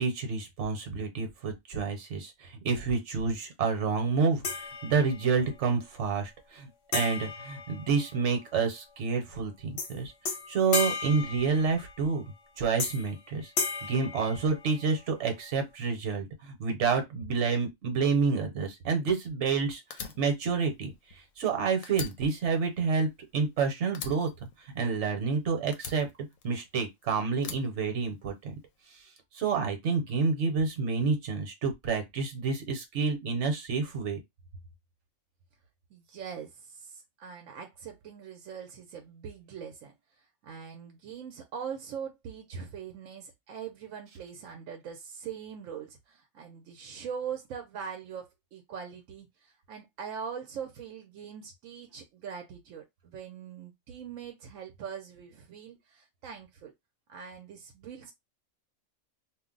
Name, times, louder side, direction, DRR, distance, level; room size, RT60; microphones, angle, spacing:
voice 1, 0.0-10.1 10.5-13.5 13.8-24.5 24.7-26.1 26.4-28.5 29.3-34.2, right 5 dB, 65° right, 1.1 m, -29 dB
sound 1, 4.4-5.4 6.9-8.5 9.8-10.0 10.3-12.1 12.8-13.2 13.6-15.0, left 4 dB, 60° left, 1.0 m, -35 dB
Fire, 19.9-21.5 21.8-23.6 23.9-25.3 25.7-26.9 27.4-28.6, left 6 dB, 90° left, 1.0 m, -43 dB
voice 2, 35.9-39.9 40.4-56.7 57.1-58.1, right 7 dB, 85° right, 1.0 m, -42 dB
2.5 x 2.0 x 3.7 m
omnidirectional pair, 1.3 m